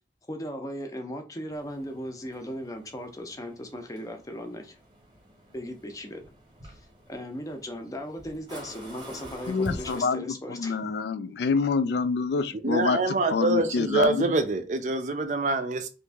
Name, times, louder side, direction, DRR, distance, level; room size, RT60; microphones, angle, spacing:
voice 1, 0.3-4.8 5.5-6.2 6.6-6.8 7.1-10.9, equal, 20° left, 0.5 m, -37 dB
sound 1, 1.5-10.1, equal, 25° right, 0.8 m, -46 dB
voice 2, 9.5-10.2 10.5-14.3, left 4 dB, 70° left, 0.3 m, -27 dB
voice 3, 12.6-15.9, right 2 dB, 45° right, 0.4 m, -25 dB
2.9 x 2.5 x 3.4 m
head